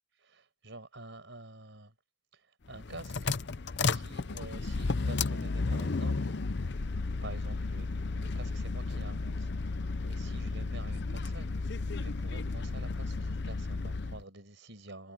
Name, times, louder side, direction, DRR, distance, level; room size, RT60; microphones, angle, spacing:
voice 1, 0.1-1.9 2.3-3.4 3.9-6.8 7.2-9.8 10.1-15.1, right 2 dB, 60° right, 5.6 m, -49 dB
sound 1, 2.7-14.2, left 3 dB, 55° left, 0.7 m, -33 dB
head